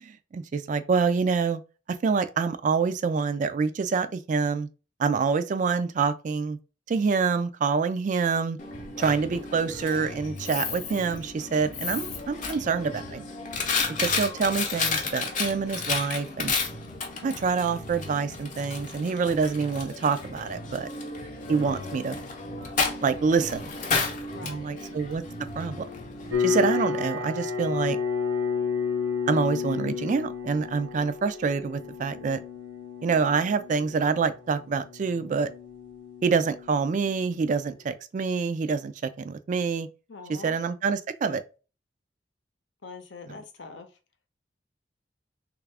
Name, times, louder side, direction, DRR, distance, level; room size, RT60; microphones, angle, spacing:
voice 1, 0.0-1.6 2.0-4.7 5.0-6.6 6.9-8.6 9.0-13.2 14.0-16.5 17.2-20.9 21.5-22.2 23.0-23.7 24.4-25.2 25.6-25.8 26.4-28.0 29.3-32.4 33.0-35.5 36.2-39.9 40.4-41.4, right 5 dB, 45° right, 0.3 m, -26 dB
Coin (dropping), 8.6-26.4, left 4 dB, 45° left, 0.7 m, -32 dB
voice 2, 21.5-21.9 24.3-24.9 40.1-40.6 42.8-44.0, left 4 dB, 80° left, 0.7 m, -43 dB
sound 1, 26.3-37.4, left 5 dB, 70° right, 0.9 m, -32 dB
3.3 x 2.4 x 3.3 m
head